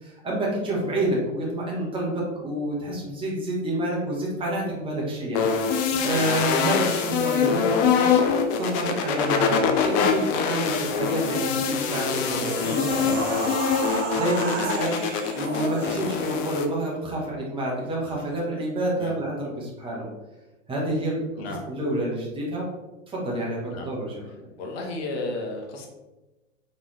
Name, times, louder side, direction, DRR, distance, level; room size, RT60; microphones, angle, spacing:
voice 1, 0.0-8.1 8.6-13.5 14.1-15.0 15.3-20.1 20.7-22.7 23.1-24.2, right 1 dB, 15° right, -4 dB, 1.3 m, -28 dB
sound 1, 5.3-16.7, left 6 dB, 35° left, 0.5 m, -24 dB
sound 2, 11.8-16.4, right 3 dB, 90° right, 0.9 m, -32 dB
voice 2, 12.5-13.1 19.0-19.1 21.4-21.6 23.7-23.9 24.6-25.9, left 2 dB, 55° left, 1 dB, 1.3 m, -33 dB
4.1 x 3.6 x 3.2 m, 1.1 s
hypercardioid pair, 110°, 37 cm